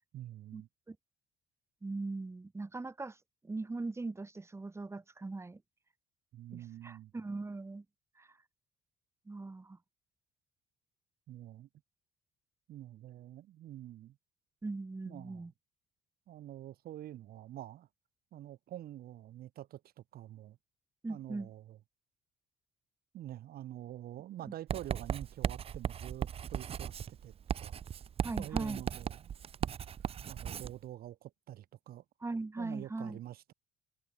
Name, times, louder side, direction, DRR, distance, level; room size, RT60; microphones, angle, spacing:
voice 1, 0.1-0.7 6.3-7.1 11.3-11.7 12.7-14.2 15.0-15.5 16.3-17.9 18.3-19.8 20.1-20.6 21.1-21.8 23.1-26.9 27.2-27.3 27.6-27.8 28.4-29.3 29.6-29.7 30.3-32.0 32.6-33.5, right 13 dB, 65° right, 1.8 m, -46 dB
voice 2, 1.8-3.2 3.4-5.6 6.5-7.8 8.2-8.3 9.3-9.8 14.6-15.5 21.0-21.5 28.2-28.8 32.2-33.2, right 3 dB, 15° right, 2.1 m, -40 dB
Writing, 24.7-30.8, right 8 dB, 35° right, 0.5 m, -37 dB
cardioid pair, 110°, 17 cm